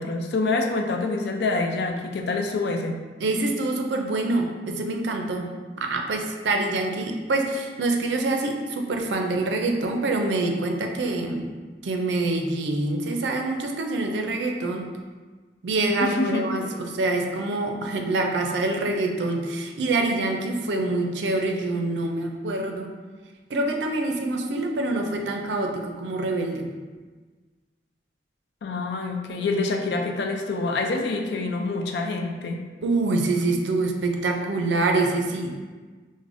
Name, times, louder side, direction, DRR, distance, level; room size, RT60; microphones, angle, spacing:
voice 1, 0.0-3.0 16.0-16.8 28.6-32.6, left 3 dB, 75° left, 3 dB, 0.4 m, -26 dB
voice 2, 3.2-5.5 5.8-11.5 11.8-14.9 15.6-22.9 23.5-26.7 32.8-35.6, right 2 dB, 90° right, 3 dB, 0.4 m, -25 dB
4.7 x 2.1 x 2.5 m, 1.4 s
head